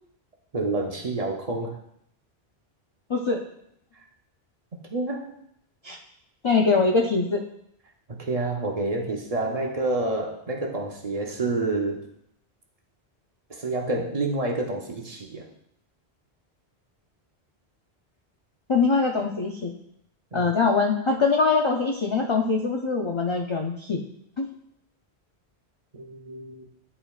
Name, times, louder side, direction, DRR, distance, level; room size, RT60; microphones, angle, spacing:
voice 1, 0.5-1.8 4.9-5.3 8.1-12.0 13.5-15.5 20.3-20.5 25.9-26.7, right 2 dB, 40° right, 0 dB, 0.8 m, -28 dB
voice 2, 3.1-3.4 5.8-6.0 6.4-7.4 18.7-19.7 20.3-24.0 24.4-24.5, left 4 dB, 45° left, 1 dB, 0.4 m, -23 dB
10.0 x 4.3 x 2.3 m, 0.74 s
omnidirectional pair, 1.1 m